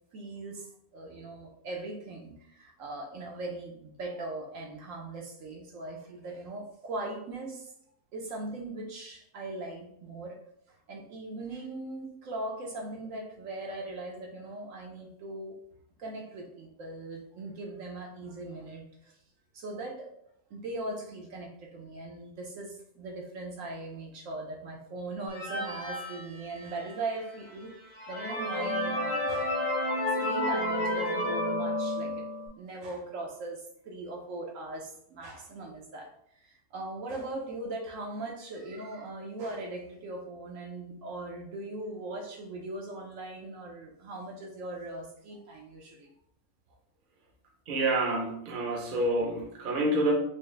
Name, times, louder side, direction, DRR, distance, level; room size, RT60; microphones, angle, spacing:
voice 1, 0.1-7.7 8.1-10.4 10.9-15.6 16.0-19.2 19.5-20.1 20.5-27.8 28.1-29.6 30.0-32.2 32.6-36.1 36.4-46.1, right 2 dB, 70° right, 0 dB, 0.9 m, -40 dB
sound 1, 25.3-26.9 27.5-27.6 27.9-32.5, left 1 dB, 65° left, 1.7 m, -31 dB
voice 2, 47.7-50.1, right 1 dB, 50° right, 0 dB, 0.7 m, -28 dB
4.5 x 2.0 x 3.1 m, 0.73 s
omnidirectional pair, 1.5 m